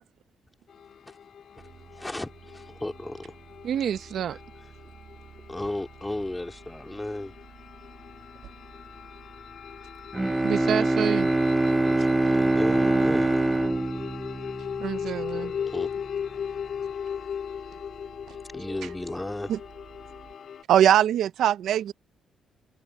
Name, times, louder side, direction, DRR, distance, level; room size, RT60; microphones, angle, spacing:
sound 1, 0.7-20.6, left 7 dB, 55° left, 2.2 m, -38 dB
sound 2, 1.6-10.7 11.2-20.3, right 6 dB, 45° right, 2.6 m, -52 dB
voice 1, 1.9-3.4 5.5-7.3 11.7-13.4 15.2-16.5 18.3-19.5, left 1 dB, 10° left, 2.5 m, -35 dB
voice 2, 3.6-4.4 10.4-11.3 14.8-15.6, right 8 dB, 60° right, 1.0 m, -28 dB
Bowed string instrument, 10.1-15.1, right 2 dB, 10° right, 0.3 m, -24 dB
voice 3, 20.7-21.9, right 10 dB, 80° right, 0.5 m, -20 dB
cardioid pair, 150°, 0 cm